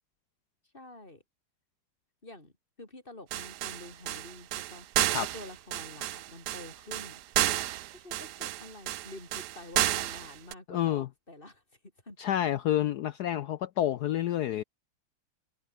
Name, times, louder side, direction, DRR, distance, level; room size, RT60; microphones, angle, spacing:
voice 1, 0.7-1.2 2.2-2.5 2.8-4.9 5.2-7.5 7.9-11.6 12.0-12.2, left 2 dB, 25° left, 4.9 m, -48 dB
sound 1, 3.3-10.5, right 14 dB, 70° right, 0.9 m, -31 dB
voice 2, 10.7-11.1 12.2-14.6, left 11 dB, 80° left, 0.9 m, -29 dB
omnidirectional pair, 2.4 m